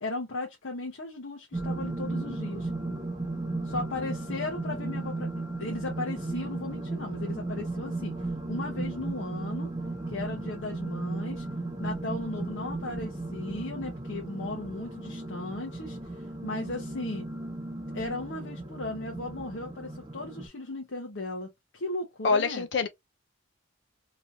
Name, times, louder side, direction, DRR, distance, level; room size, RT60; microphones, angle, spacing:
voice 1, 0.0-2.7 3.6-5.3 5.6-8.1 8.5-9.7 10.1-11.4 11.8-17.2 17.9-22.6, left 2 dB, 80° left, 0.9 m, -36 dB
sound 1, 1.5-20.5, right 2 dB, 20° right, 0.8 m, -35 dB
voice 2, 22.2-22.9, left 4 dB, 65° left, 0.5 m, -25 dB
3.1 x 2.6 x 2.6 m
head